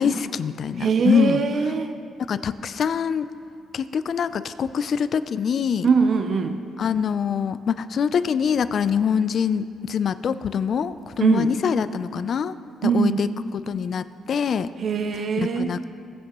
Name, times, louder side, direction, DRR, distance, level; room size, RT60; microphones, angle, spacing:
voice 1, 0.0-1.4 2.2-3.3 3.7-5.9 6.8-12.5 12.8-14.7 15.4-15.9, left 7 dB, 55° left, 13 dB, 0.4 m, -24 dB
voice 2, 0.8-2.0 5.8-6.6 11.2-11.5 12.8-13.2 14.8-15.7, right 5 dB, 55° right, 7 dB, 0.5 m, -21 dB
17.0 x 8.0 x 3.0 m, 2.5 s
cardioid pair, 90°, 0 cm